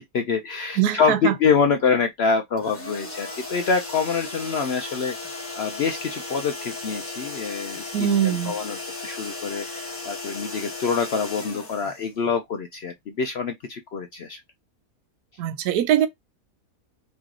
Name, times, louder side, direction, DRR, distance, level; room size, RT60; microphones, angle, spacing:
voice 1, 0.0-5.1 5.5-14.4, left 5 dB, 65° left, 0.6 m, -26 dB
voice 2, 0.8-1.3 7.9-8.5 15.4-16.1, right 10 dB, 85° right, 1.1 m, -22 dB
sound 1, 2.6-12.5, left 3 dB, 10° left, 1.0 m, -36 dB
3.1 x 3.0 x 3.7 m
omnidirectional pair, 1.6 m